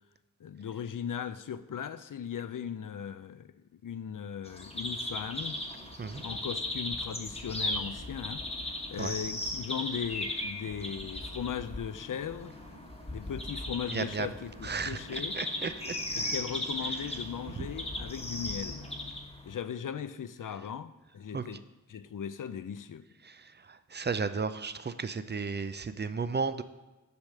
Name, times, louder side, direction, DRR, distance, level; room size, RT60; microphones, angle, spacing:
voice 1, 0.4-5.6 6.2-8.5 8.9-12.5 13.1-15.4 16.1-18.9 19.5-21.6 21.9-23.0, left 8 dB, 65° left, 13 dB, 0.5 m, -38 dB
sound 1, 4.5-19.6, left 1 dB, 15° left, 1.2 m, -37 dB
sound 2, 5.2-19.1, right 1 dB, 80° right, 1.5 m, -54 dB
voice 2, 13.9-14.3 14.6-16.0 21.3-21.4 23.2-26.6, right 4 dB, 30° right, 11 dB, 0.4 m, -34 dB
7.0 x 4.9 x 6.6 m, 1.1 s
wide cardioid pair, 80°, 34 cm